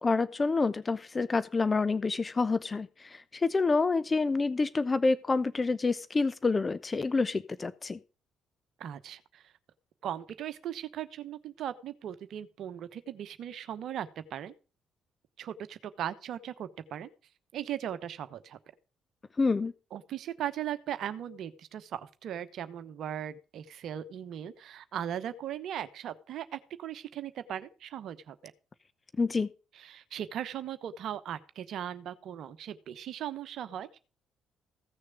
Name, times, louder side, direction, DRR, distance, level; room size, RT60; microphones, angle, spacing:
voice 1, 0.0-8.0 19.4-19.7 29.2-29.5, left 3 dB, 30° left, 16 dB, 0.7 m, -28 dB
voice 2, 8.8-9.5 10.0-14.5 15.4-17.1 17.5-18.6 19.9-28.5 29.7-34.0, right 10 dB, 60° right, 12 dB, 1.0 m, -38 dB
16.0 x 6.5 x 5.0 m, 0.35 s
hypercardioid pair, 45°, 0 cm